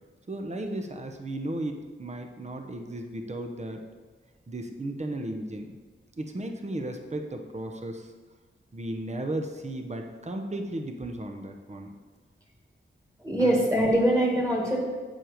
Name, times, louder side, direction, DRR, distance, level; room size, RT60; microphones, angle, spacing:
voice 1, 0.3-3.8 4.5-5.7 6.2-8.1 8.7-11.9 13.4-13.7, right 1 dB, 35° right, 4 dB, 0.9 m, -35 dB
voice 2, 13.2-14.8, right 1 dB, 15° right, -2 dB, 2.1 m, -23 dB
7.7 x 7.6 x 5.1 m, 1.4 s
wide cardioid pair, 105°, 21 cm